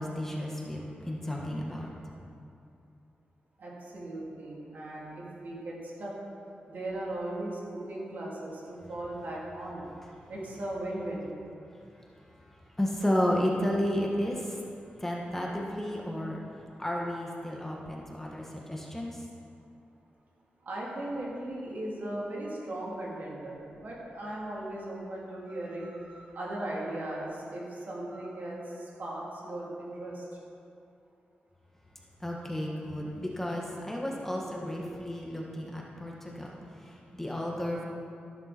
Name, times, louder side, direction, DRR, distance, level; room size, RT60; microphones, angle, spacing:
voice 1, 0.0-2.0 11.7-12.1 12.8-14.6 15.0-16.4 16.8-19.2 32.2-37.9, equal, 10° left, -2 dB, 1.6 m, -32 dB
voice 2, 3.6-6.1 6.7-9.9 10.3-11.3 20.7-30.3 34.4-34.9, right 1 dB, 60° right, -5 dB, 3.5 m, -38 dB
13.5 x 11.5 x 4.5 m, 2.5 s
wide cardioid pair, 105°, 3 cm